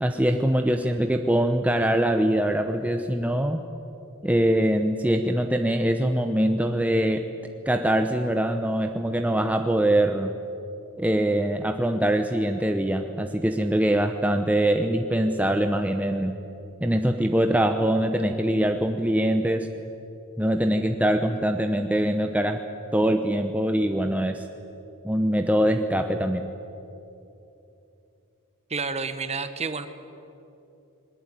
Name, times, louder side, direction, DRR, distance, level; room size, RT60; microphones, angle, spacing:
voice 1, 0.0-3.6 4.2-7.3 7.7-10.3 11.0-16.3 16.8-19.7 20.4-22.6 22.9-24.4 25.0-26.5, right 1 dB, 5° right, 5 dB, 0.8 m, -23 dB
voice 2, 28.7-29.9, right 4 dB, 30° right, 10 dB, 1.2 m, -29 dB
21.0 x 19.5 x 9.1 m, 2.9 s
head